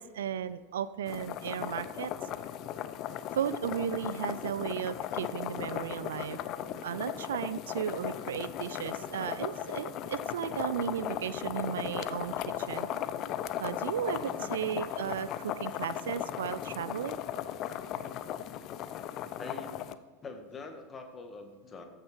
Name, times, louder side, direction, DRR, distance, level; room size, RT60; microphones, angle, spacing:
voice 1, 0.0-2.1 3.3-6.4 6.8-12.9 13.6-17.2, right 9 dB, 70° right, 15 dB, 0.4 m, -35 dB
sound 1, 1.1-20.0, left 10 dB, 45° left, 0.5 m, -37 dB
voice 2, 14.1-14.6 19.4-19.8 20.2-21.8, left 3 dB, 25° left, 6 dB, 1.5 m, -45 dB
14.0 x 6.6 x 4.6 m, 1.4 s
figure-of-eight pair, 75°, 0 cm